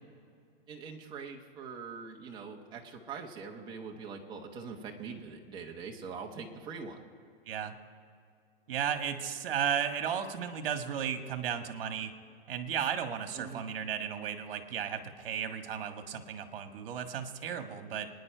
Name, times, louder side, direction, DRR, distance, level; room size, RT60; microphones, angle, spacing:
voice 1, 0.7-7.0 13.3-13.6, right 5 dB, 15° right, 1 dB, 1.1 m, -43 dB
voice 2, 8.7-12.1 12.5-18.1, right 8 dB, 65° right, 7 dB, 1.6 m, -34 dB
24.5 x 10.0 x 4.5 m, 2.3 s
hypercardioid pair, 165°, 30 cm